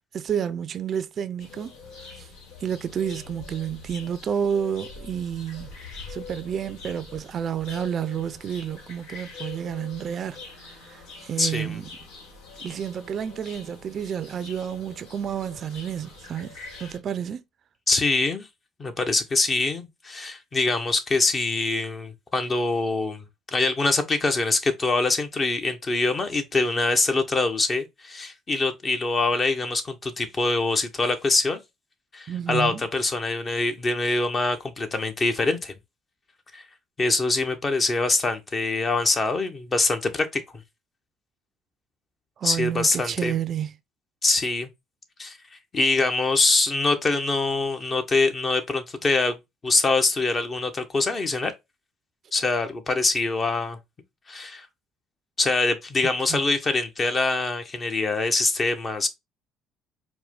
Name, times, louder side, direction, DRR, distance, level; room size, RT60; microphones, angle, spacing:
voice 1, 0.1-1.7 2.0-2.3 2.6-10.4 10.6-11.9 12.6-17.4 32.3-32.8 42.4-43.7 56.3-56.4, right 8 dB, 50° right, 0.5 m, -30 dB
sound 1, 1.4-17.0, left 4 dB, 75° left, 1.5 m, -44 dB
voice 2, 11.4-11.8 17.9-18.5 18.8-23.2 23.5-31.6 32.1-35.7 36.5-36.6 37.0-40.4 42.4-43.4 44.2-44.7 45.2-45.4 45.7-51.5 52.3-53.8 54.3-54.7 55.4-59.1, left 3 dB, 35° left, 1.0 m, -24 dB
4.6 x 2.2 x 3.7 m
supercardioid pair, 70°, 0 cm